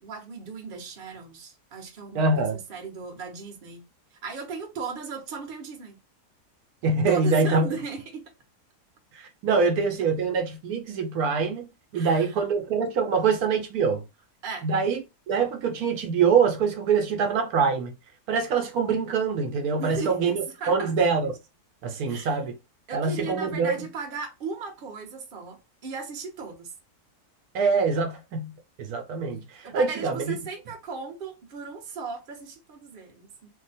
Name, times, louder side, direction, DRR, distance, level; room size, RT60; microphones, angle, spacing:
voice 1, 0.0-3.9 4.2-6.0 7.1-8.2 11.9-12.3 14.4-14.7 19.8-20.3 20.6-20.9 22.1-22.4 22.9-26.7 29.6-33.5, right 4 dB, 40° right, 0.9 m, -37 dB
voice 2, 2.1-2.6 6.8-7.6 9.1-14.0 14.6-18.0 18.3-21.4 21.8-22.6 22.9-23.8 27.5-30.4, right 5 dB, 75° right, 1.1 m, -24 dB
2.7 x 2.2 x 4.0 m
omnidirectional pair, 1.6 m